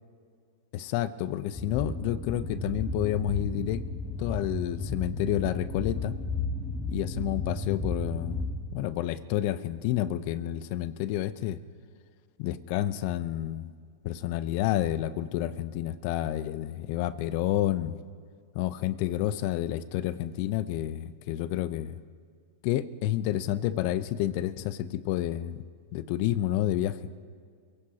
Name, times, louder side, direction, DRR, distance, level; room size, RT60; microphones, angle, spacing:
voice 1, 0.7-3.9 4.2-6.2 6.9-8.5 8.7-11.6 12.4-13.7 14.0-17.9 18.5-22.0 22.6-25.6 25.9-27.0, left 13 dB, 55° left, 14 dB, 0.7 m, -29 dB
sound 1, 1.5-8.6, left 2 dB, 10° left, 3.2 m, -33 dB
29.0 x 16.5 x 2.9 m, 2.1 s
hypercardioid pair, 120°, 0 cm